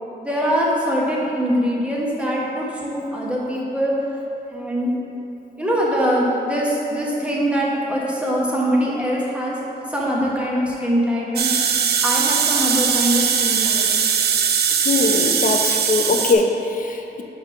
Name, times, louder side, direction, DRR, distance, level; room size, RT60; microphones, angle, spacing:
voice 1, 0.2-4.0 4.5-4.9 5.6-11.5 12.0-13.9, equal, 5° right, -4 dB, 1.2 m, -22 dB
sound 1, 11.4-16.3, right 7 dB, 65° right, 0.5 m, -20 dB
voice 2, 14.8-17.2, left 3 dB, 45° left, 3 dB, 0.6 m, -21 dB
5.7 x 3.4 x 5.6 m, 2.9 s
cardioid pair, 85°, 18 cm